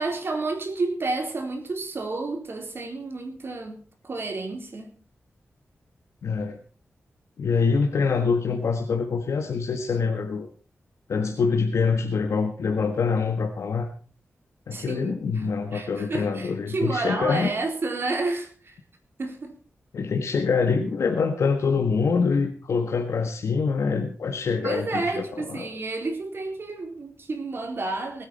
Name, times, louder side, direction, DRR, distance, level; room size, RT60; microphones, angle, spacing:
voice 1, 0.0-4.9 14.7-18.8 19.2-19.5 24.6-28.3, right 3 dB, 55° right, 3.9 m, -30 dB
voice 2, 6.2-6.6 7.4-10.5 11.1-13.9 14.7-17.5 19.9-25.7, left 5 dB, 80° left, 1.5 m, -25 dB
20.0 x 9.6 x 4.3 m
wide cardioid pair, 95°, 5 cm